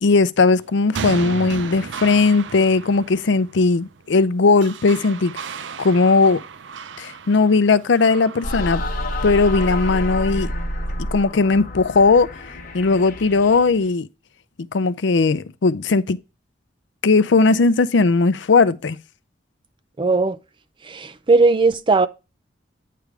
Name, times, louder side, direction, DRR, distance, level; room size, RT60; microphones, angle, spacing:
voice 1, 0.0-5.3 5.8-6.4 7.0-8.8 9.2-10.5 11.1-12.3 12.7-14.1 14.7-16.2 17.0-19.0, left 4 dB, 75° left, 0.5 m, -17 dB
sound 1, 0.6-9.9, right 6 dB, 80° right, 0.5 m, -35 dB
sound 2, 8.4-13.9, left 1 dB, 50° left, 1.2 m, -28 dB
voice 2, 20.0-20.4 20.8-22.1, right 3 dB, 25° right, 0.4 m, -17 dB
9.3 x 3.4 x 4.8 m
head